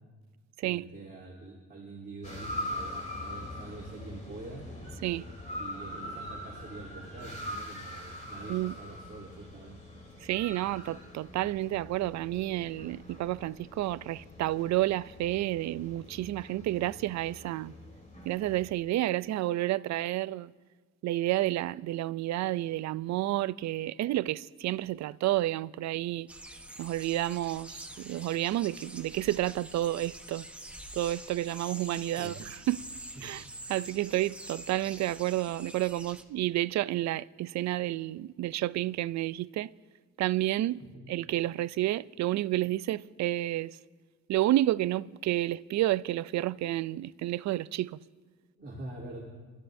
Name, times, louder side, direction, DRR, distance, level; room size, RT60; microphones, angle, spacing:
voice 1, 0.6-4.6 5.6-9.8 31.9-32.4 33.2-33.3 40.8-41.1 48.6-49.2, right 2 dB, 35° right, 3.5 m, -45 dB
sound 1, 2.2-18.7, left 1 dB, 25° left, 3.3 m, -43 dB
voice 2, 10.2-17.7 18.3-20.5 21.0-26.3 26.8-30.5 31.0-32.4 32.7-32.8 33.2-33.4 33.7-39.7 40.2-40.8 41.1-43.8 44.3-48.0, right 15 dB, 65° right, 0.4 m, -30 dB
sound 2, 26.3-36.2, right 1 dB, 5° right, 1.1 m, -46 dB
26.5 x 13.5 x 2.7 m
cardioid pair, 90°, 30 cm